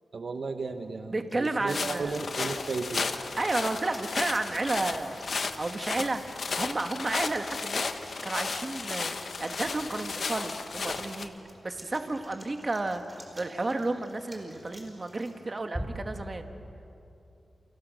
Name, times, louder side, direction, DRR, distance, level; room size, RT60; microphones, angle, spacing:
voice 1, 0.1-3.1, right 4 dB, 65° right, 7 dB, 1.2 m, -34 dB
sound 1, 0.7-16.2, equal, 10° right, 4.4 m, -48 dB
voice 2, 1.1-2.2 3.4-5.2 5.6-6.3 6.6-7.9 8.2-11.3 11.6-13.0 13.3-16.5, right 2 dB, 35° right, 6 dB, 1.6 m, -32 dB
sound 2, 1.7-11.3, left 4 dB, 65° left, 1.3 m, -34 dB
29.5 x 28.5 x 6.5 m, 2.8 s
wide cardioid pair, 100°, 0 cm